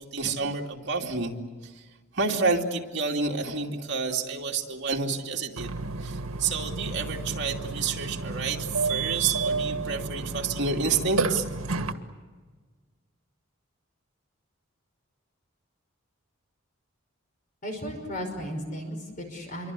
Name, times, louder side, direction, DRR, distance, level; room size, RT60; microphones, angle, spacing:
voice 1, 0.0-1.3 2.1-5.7 6.0-11.4, right 4 dB, 55° right, 0 dB, 2.7 m, -29 dB
Burping eructation, 5.6-11.9, right 3 dB, 85° right, 1.6 m, -31 dB
voice 2, 17.6-19.7, equal, 40° left, 4 dB, 5.5 m, -35 dB
27.5 x 24.0 x 8.4 m, 1.4 s
head